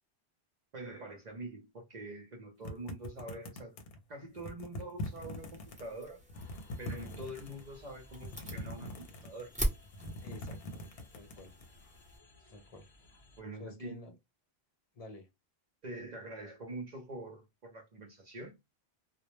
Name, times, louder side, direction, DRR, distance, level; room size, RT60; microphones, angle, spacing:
voice 1, 0.7-3.8 4.1-6.2 6.8-9.5 13.4-14.0 15.8-18.5, right 2 dB, 50° right, 0.7 m, -45 dB
sound 1, 2.6-4.0 4.4-5.8 6.2-7.6 8.1-9.5 9.8-11.7, left 1 dB, 70° left, 0.8 m, -43 dB
sound 2, 5.0-12.2, right 1 dB, 10° right, 0.6 m, -42 dB
sound 3, 6.3-13.4, left 3 dB, 35° left, 1.1 m, -58 dB
voice 2, 10.2-10.8 11.1-11.6 12.5-12.9 13.6-14.2 14.9-15.3, left 2 dB, 50° left, 0.5 m, -50 dB
2.1 x 2.0 x 3.0 m
omnidirectional pair, 1.1 m